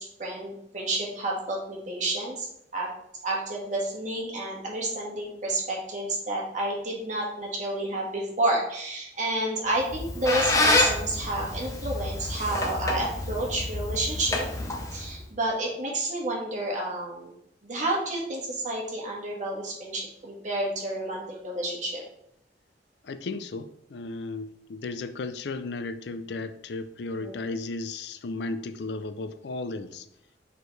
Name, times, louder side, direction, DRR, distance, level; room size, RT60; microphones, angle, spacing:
voice 1, 0.0-2.5 2.7-2.9 3.2-14.5 14.9-17.3 17.6-22.0 27.1-27.6, right 1 dB, 45° right, -2 dB, 1.7 m, -30 dB
Squeak, 9.8-15.2, left 2 dB, 20° left, 1.0 m, -28 dB
voice 2, 23.0-30.1, left 3 dB, 65° left, 11 dB, 0.4 m, -35 dB
6.1 x 5.0 x 3.2 m, 0.75 s
head